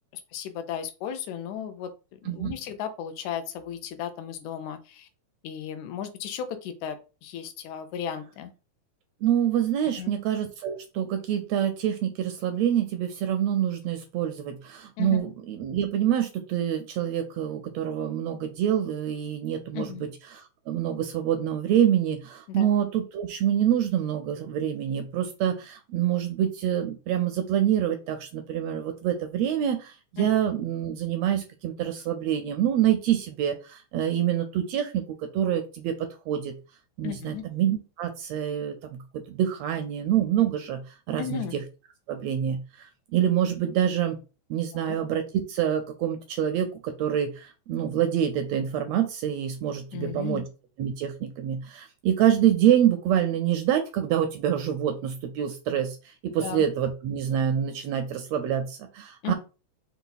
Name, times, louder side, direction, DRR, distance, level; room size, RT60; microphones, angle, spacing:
voice 1, 0.3-5.1 5.4-8.5 10.0-10.1 15.0-15.2 19.7-20.1 22.5-22.7 30.2-30.3 37.0-37.4 41.2-41.5 44.7-45.0 49.9-50.5 56.4-56.7 59.2-59.3, left 9 dB, 80° left, 8 dB, 2.0 m, -35 dB
voice 2, 9.2-36.5 37.0-40.8 41.1-41.6 42.1-44.2 44.5-50.4 50.8-59.3, right 10 dB, 80° right, 6 dB, 1.6 m, -26 dB
5.5 x 2.3 x 4.0 m, 0.32 s
omnidirectional pair, 3.4 m